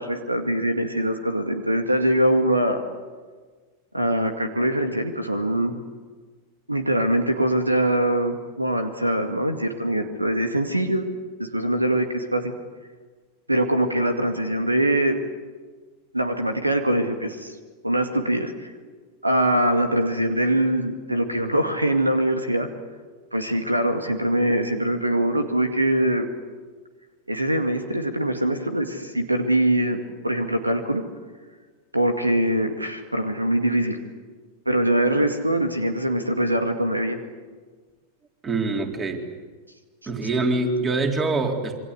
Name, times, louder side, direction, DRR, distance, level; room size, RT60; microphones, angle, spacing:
voice 1, 0.0-2.8 3.9-5.8 6.7-11.1 11.4-12.5 13.5-15.2 16.1-17.5 17.8-18.7 19.2-22.7 23.3-26.3 27.3-30.0 30.2-31.0 31.9-34.0 34.7-37.2, right 1 dB, 85° right, 7 dB, 2.2 m, -23 dB
voice 2, 38.4-39.2 40.1-41.8, right 3 dB, 20° right, 3 dB, 3.9 m, -24 dB
27.0 x 24.5 x 8.3 m, 1.4 s
figure-of-eight pair, 90°, 0 cm